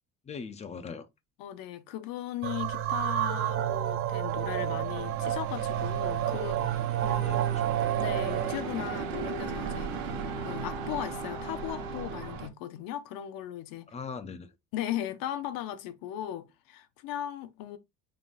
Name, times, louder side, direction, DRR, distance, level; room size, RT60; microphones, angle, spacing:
voice 1, 0.3-1.1 6.9-7.7 13.9-14.5, left 5 dB, 20° left, 0.5 m, -41 dB
voice 2, 1.4-7.2 8.0-13.9 14.7-17.8, left 12 dB, 80° left, 0.8 m, -37 dB
sound 1, 2.4-8.6, right 12 dB, 40° right, 0.6 m, -29 dB
sound 2, 4.3-12.5, right 6 dB, 80° right, 1.3 m, -38 dB
Wind instrument woodwind instrument, 7.1-12.3, left 1 dB, 5° right, 0.9 m, -43 dB
5.4 x 3.8 x 2.5 m
cardioid pair, 160°, 34 cm